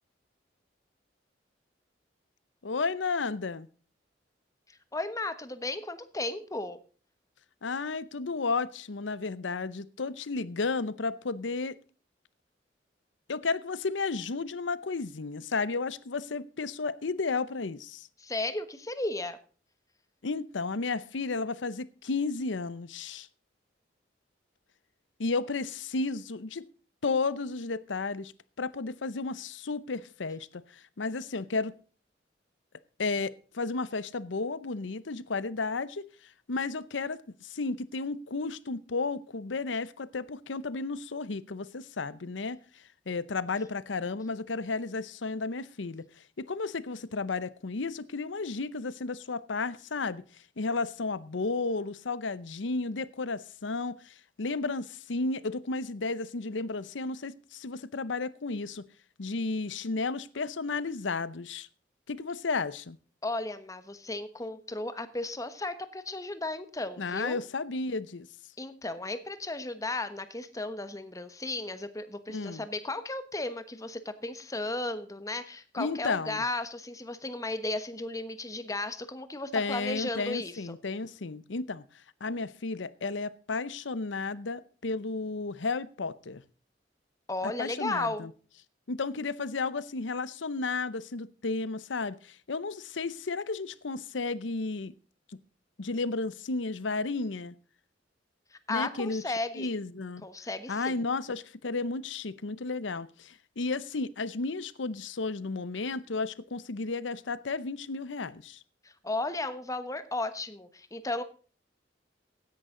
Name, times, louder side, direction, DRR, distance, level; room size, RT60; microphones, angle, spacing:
voice 1, 2.6-3.7 7.6-11.8 13.3-18.1 20.2-23.3 25.2-26.7 27.0-28.3 28.6-31.7 33.0-42.6 43.1-58.8 59.2-61.7 62.1-63.0 67.0-68.3 72.3-72.6 75.8-76.4 79.5-81.8 82.2-86.4 87.4-88.3 88.9-94.9 95.8-97.5 98.7-99.2 99.5-100.3 100.7-108.6, left 3 dB, 90° left, 0.8 m, -33 dB
voice 2, 4.7-6.8 18.2-19.4 63.2-67.4 68.6-80.8 87.3-88.3 98.5-99.7 100.2-101.0 108.8-111.2, left 2 dB, 20° left, 1.2 m, -35 dB
16.0 x 11.0 x 3.8 m
head